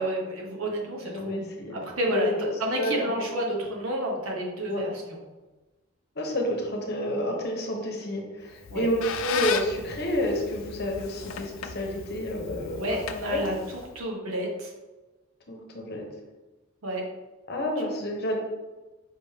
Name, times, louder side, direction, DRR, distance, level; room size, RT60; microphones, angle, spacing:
voice 1, 0.0-5.2 8.7-8.9 12.6-13.6 13.9-14.7 16.8-17.0, right 1 dB, 90° right, -1 dB, 1.1 m, -30 dB
voice 2, 1.0-1.8 2.1-2.4 2.8-3.3 4.7-4.9 6.1-12.8 13.2-13.4 15.5-16.0 17.5-18.4, equal, 50° left, 0 dB, 0.9 m, -29 dB
Squeak, 8.5-14.0, left 6 dB, 75° left, 0.4 m, -36 dB
5.2 x 3.4 x 2.8 m, 1.2 s
head